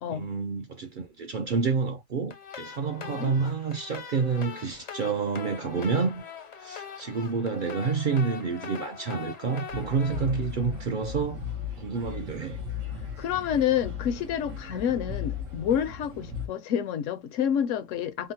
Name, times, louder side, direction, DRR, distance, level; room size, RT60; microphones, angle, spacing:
voice 1, 0.1-6.2 6.6-11.4 11.8-12.6, right 5 dB, 60° right, 0.5 m, -29 dB
sound 1, 2.3-11.4, left 7 dB, 45° left, 0.5 m, -42 dB
voice 2, 2.9-3.3 13.2-18.3, left 9 dB, 80° left, 0.9 m, -28 dB
sound 2, 9.7-16.5, left 6 dB, 85° right, 1.5 m, -36 dB
3.6 x 2.0 x 2.7 m
omnidirectional pair, 1.3 m